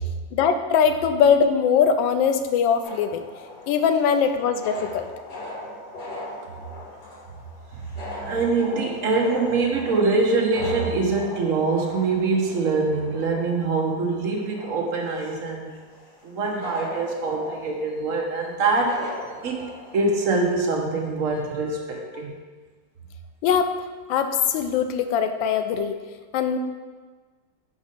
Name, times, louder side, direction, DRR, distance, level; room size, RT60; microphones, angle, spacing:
voice 1, 0.3-3.2 3.7-5.1 23.4-26.0 26.3-26.6, left 7 dB, 85° left, 8 dB, 1.3 m, -21 dB
sound 1, 2.8-20.4, left 1 dB, 60° left, 2.4 m, -39 dB
voice 2, 8.3-15.7 16.2-19.0 19.4-22.3, right 3 dB, 55° right, 0 dB, 1.1 m, -24 dB
5.3 x 4.6 x 5.2 m, 1.4 s
omnidirectional pair, 2.0 m